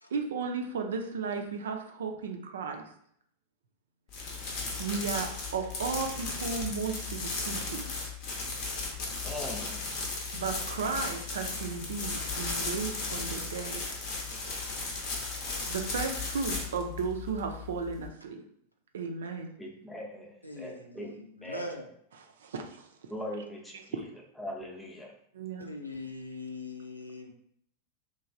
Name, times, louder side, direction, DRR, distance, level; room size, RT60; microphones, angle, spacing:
voice 1, 0.1-2.8 4.8-7.9 10.3-13.8 15.4-18.4 18.9-19.5 22.4-22.9 23.9-24.0 25.3-25.7, right 5 dB, 65° right, 0.4 m, -34 dB
sound 1, 4.1-18.1, left 3 dB, 45° left, 0.7 m, -36 dB
voice 2, 9.2-10.0 19.6-21.1 21.4-21.7 23.1-23.7 24.4-25.1, left 1 dB, 5° left, 0.6 m, -40 dB
voice 3, 20.4-21.9 25.6-27.3, left 2 dB, 85° left, 0.4 m, -41 dB
3.0 x 2.3 x 2.5 m
figure-of-eight pair, 90°, 0 cm